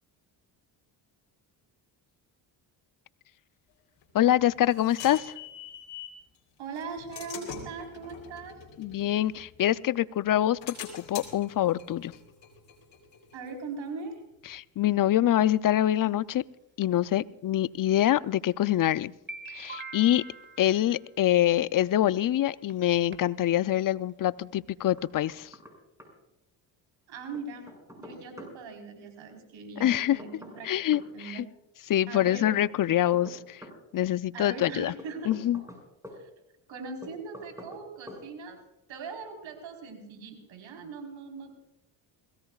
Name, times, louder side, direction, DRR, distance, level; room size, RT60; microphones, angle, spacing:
sound 1, 4.0-6.2 6.8-9.9 10.3-13.7, left 7 dB, 65° left, 3.8 m, -44 dB
voice 1, 4.1-5.3 8.8-12.1 14.5-16.4 16.8-19.1 19.5-20.2 20.6-25.5 29.8-30.2 30.6-31.5 31.9-33.6 33.9-34.9 35.2-35.6, left 12 dB, 45° left, 18 dB, 0.6 m, -25 dB
voice 2, 6.6-8.6 13.3-14.2 27.1-27.7 28.0-31.4 32.1-32.5 34.3-35.3 36.2-36.3 36.7-38.6 38.9-41.5, right 4 dB, 70° right, 3 dB, 4.4 m, -40 dB
sound 2, 15.7-15.8 16.8-16.9 18.1-18.2 18.7-18.8 19.1-21.1 22.2-22.3 22.7-22.8 23.1-23.5 23.8-23.9 24.1-24.2 24.5-24.7, right 3 dB, 25° right, 1.9 m, -43 dB
Knock, 25.0-25.7 26.0-26.1 27.3-28.5 29.9-31.1 32.6-33.8 35.0-36.2 37.0-37.8 38.1-38.2, equal, 5° right, 6.3 m, -46 dB
22.0 x 17.0 x 2.4 m, 0.92 s
supercardioid pair, 70°, 47 cm